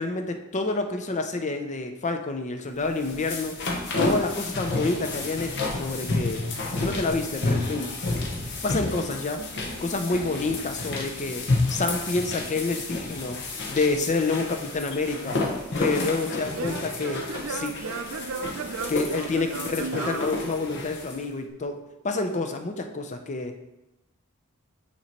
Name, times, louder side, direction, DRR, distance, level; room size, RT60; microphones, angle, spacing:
voice 1, 0.0-3.6 4.0-6.5 6.8-7.9 8.6-9.5 9.8-13.4 13.7-15.4 15.8-17.8 18.9-23.5, left 3 dB, 35° left, 6 dB, 0.5 m, -28 dB
sound 1, 2.8-21.2, left 2 dB, 55° left, 1.0 m, -31 dB
Singing / Plucked string instrument, 15.3-21.1, right 4 dB, 65° right, 0.5 m, -36 dB
8.7 x 2.9 x 4.4 m, 0.95 s
head